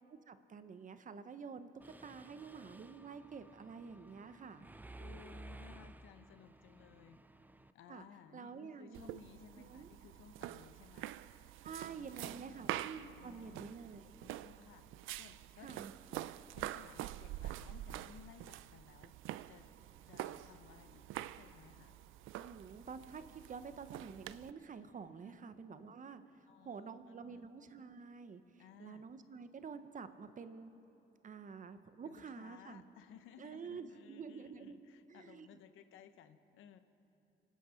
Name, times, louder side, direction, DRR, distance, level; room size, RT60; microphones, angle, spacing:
voice 1, 0.1-4.7 7.9-8.1 8.3-9.1 9.6-9.9 11.6-14.1 15.6-15.9 22.3-30.7 31.2-32.8 33.4-34.8 35.1-35.5, right 5 dB, 40° right, 11 dB, 0.8 m, -49 dB
Mechanisms, 1.8-7.7, right 2 dB, 10° right, 0.5 m, -55 dB
voice 2, 5.0-7.2 7.7-11.1 11.9-12.8 13.2-13.9 14.2-14.8 15.1-15.9 16.2-19.1 19.5-19.7 20.1-22.0 25.2-25.5 26.5-27.5 28.6-29.1 32.0-36.8, left 8 dB, 90° left, 11 dB, 0.8 m, -59 dB
sound 1, 8.9-24.5, right 14 dB, 85° right, 0.4 m, -46 dB
25.0 x 9.3 x 5.1 m, 2.9 s
cardioid pair, 90°, 20 cm